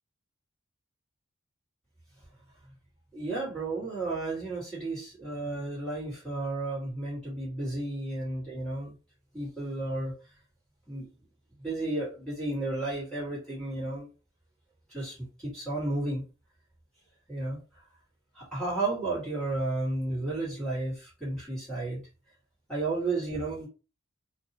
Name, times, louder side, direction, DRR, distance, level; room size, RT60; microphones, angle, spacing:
voice 1, 3.1-8.9 9.3-10.1 10.9-11.1 11.6-14.1 14.9-16.2 17.3-17.6 18.3-22.0 22.7-23.7, right 2 dB, 5° left, -9 dB, 1.6 m, -32 dB
2.6 x 2.3 x 2.8 m, 0.32 s
head